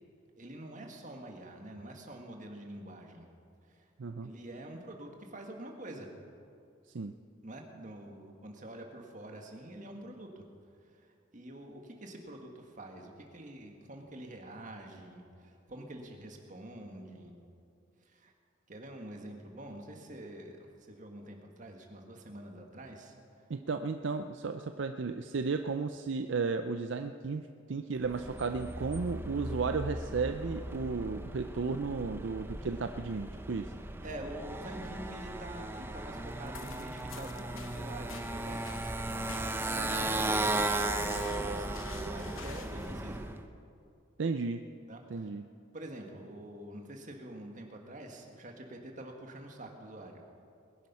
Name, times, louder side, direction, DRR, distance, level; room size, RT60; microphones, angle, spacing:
voice 1, 0.4-3.3 3.7-3.9 4.2-6.1 7.4-10.4 10.8-17.3 18.0-18.3 18.7-23.1 34.0-38.6 39.7-43.3 44.9-45.3 45.7-50.2, right 1 dB, 40° right, 2 dB, 1.7 m, -46 dB
voice 2, 4.0-4.3 6.9-7.1 23.5-27.4 27.7-33.7 44.2-44.7 45.1-45.4, right 4 dB, 65° right, 8 dB, 0.5 m, -34 dB
Motorcycle, 28.0-43.4, right 2 dB, 10° right, 0.6 m, -36 dB
sound 1, 36.3-42.9, left 7 dB, 85° left, 0.9 m, -51 dB
21.0 x 10.5 x 5.6 m, 2.4 s
head